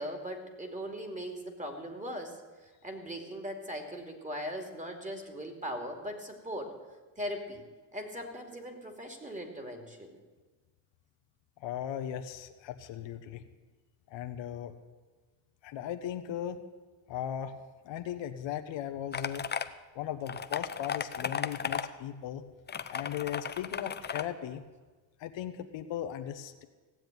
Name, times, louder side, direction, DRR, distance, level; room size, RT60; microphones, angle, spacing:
voice 1, 0.0-2.4 2.6-6.7 7.2-7.6 7.9-10.2, equal, 15° right, 4 dB, 2.8 m, -39 dB
voice 2, 11.6-13.4 14.1-14.7 15.6-16.6 17.1-17.5 17.8-19.5 19.9-22.4 22.9-24.6 25.2-26.6, left 10 dB, 70° left, 7 dB, 1.3 m, -37 dB
sound 1, 19.1-19.7 20.3-21.9 22.7-24.2, left 7 dB, 20° left, 0.6 m, -35 dB
17.0 x 7.7 x 9.2 m, 1.3 s
cardioid pair, 100°, 46 cm